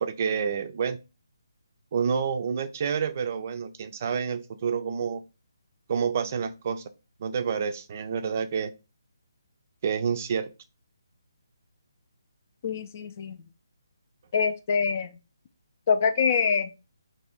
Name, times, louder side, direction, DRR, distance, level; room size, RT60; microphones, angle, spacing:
voice 1, 0.0-1.0 1.9-5.2 5.9-6.8 7.2-8.7 9.8-10.5, right 6 dB, 40° right, 9 dB, 0.4 m, -28 dB
voice 2, 12.6-13.4 14.3-15.1 15.9-16.7, left 6 dB, 40° left, 10 dB, 0.4 m, -25 dB
3.0 x 2.7 x 4.3 m, 0.28 s
figure-of-eight pair, 150°, 2 cm